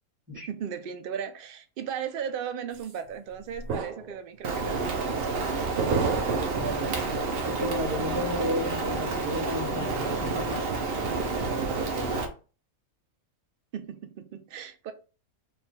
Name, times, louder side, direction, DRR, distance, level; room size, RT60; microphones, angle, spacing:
voice 1, 0.3-5.7 13.7-14.9, right 8 dB, 70° right, 0.5 m, -36 dB
sound 1, 2.8-2.9 3.5-4.2 4.5-4.8 5.8-7.4, right 5 dB, 85° right, 1.2 m, -31 dB
Rain, 4.4-12.3, right 3 dB, 50° right, 0.8 m, -29 dB
voice 2, 6.6-7.0 7.5-10.7, left 1 dB, 15° right, 1.5 m, -32 dB
3.5 x 2.4 x 4.4 m
omnidirectional pair, 1.5 m